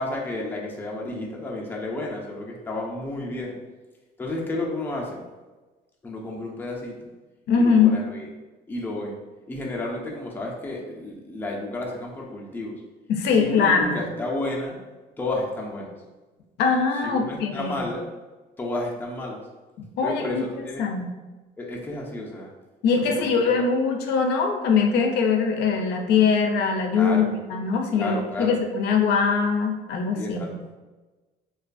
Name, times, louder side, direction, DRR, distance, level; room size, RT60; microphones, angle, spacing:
voice 1, 0.0-3.6 4.2-5.2 6.0-7.1 7.6-8.3 8.7-9.2 9.5-12.8 13.3-14.8 15.2-15.9 17.0-18.1 18.6-19.4 20.0-20.9 21.6-22.5 23.2-23.6 26.9-27.4 27.9-28.6 30.2-30.5, left 2 dB, 10° left, -2 dB, 0.5 m, -31 dB
voice 2, 7.5-8.0 13.1-14.0 16.6-17.9 20.0-20.4 20.8-21.1 22.8-30.4, left 5 dB, 80° left, 3 dB, 0.4 m, -22 dB
2.4 x 2.2 x 2.4 m, 1.2 s
cardioid pair, 110°, 17 cm